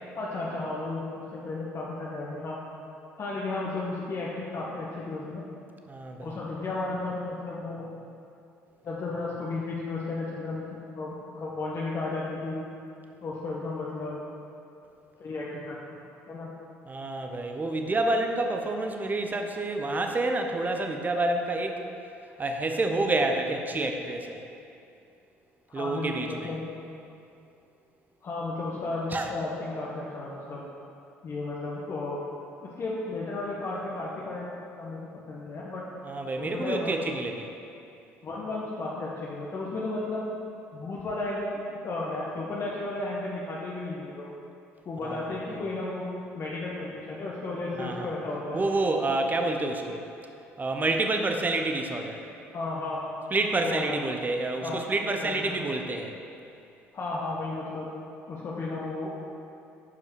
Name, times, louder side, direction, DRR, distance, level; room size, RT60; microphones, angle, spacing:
voice 1, 0.2-2.6 3.2-5.5 6.2-7.9 8.8-12.6 13.2-14.2 15.2-15.8 16.3-16.5 25.8-26.6 28.2-30.6 31.2-32.2 32.8-35.8 36.4-36.9 38.2-40.2 40.7-44.3 44.8-46.1 46.3-48.6 52.5-53.0 53.6-54.0 54.6-54.8 55.2-55.6 56.9-57.9 58.3-59.2, left 2 dB, 45° left, -5 dB, 1.2 m, -34 dB
voice 2, 5.9-6.3 16.9-21.8 22.4-24.4 25.7-26.5 29.1-29.3 36.1-37.5 45.0-45.2 47.8-48.1 48.5-50.0 50.6-52.2 53.3-56.1, right 2 dB, 25° right, 4 dB, 0.9 m, -28 dB
9.6 x 5.4 x 4.7 m, 2.6 s
hypercardioid pair, 60°, 7 cm